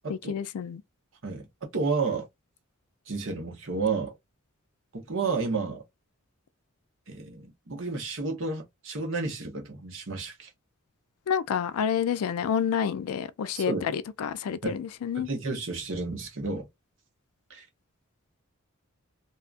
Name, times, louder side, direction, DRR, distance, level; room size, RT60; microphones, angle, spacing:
voice 1, 0.1-0.8 11.3-15.3, left 7 dB, 80° left, 0.3 m, -29 dB
voice 2, 1.7-2.3 3.1-4.2 4.9-5.8 7.1-10.5 13.5-13.9 14.6-14.8 15.2-16.7 17.5-17.6, right 4 dB, 60° right, 1.0 m, -31 dB
2.7 x 2.3 x 2.4 m
head